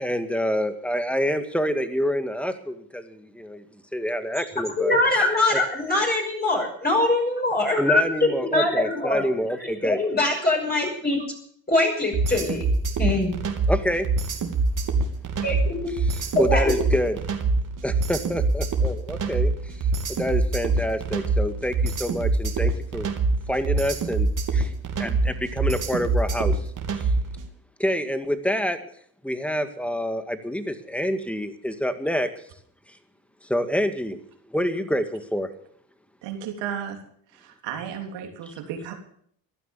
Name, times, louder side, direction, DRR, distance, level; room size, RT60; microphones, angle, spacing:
voice 1, 0.0-3.6 3.9-5.0 7.8-10.0 13.7-14.1 16.4-17.1 17.8-19.7 20.1-23.1 23.5-24.7 25.0-26.6 27.0-27.1 27.8-28.9 29.2-32.3 33.4-34.2 34.5-35.5, equal, 5° left, 9 dB, 2.0 m, -27 dB
voice 2, 4.4-9.3 9.6-11.2 11.7-12.7 13.0-13.3 15.4-15.9 16.3-16.8, left 2 dB, 20° left, -1 dB, 6.0 m, -23 dB
sound 1, 12.1-27.4, right 3 dB, 45° right, 2.9 m, -24 dB
voice 3, 36.2-37.0 37.3-38.9, right 8 dB, 70° right, 3 dB, 3.5 m, -34 dB
16.0 x 11.5 x 7.2 m, 0.64 s
hypercardioid pair, 70°, 43 cm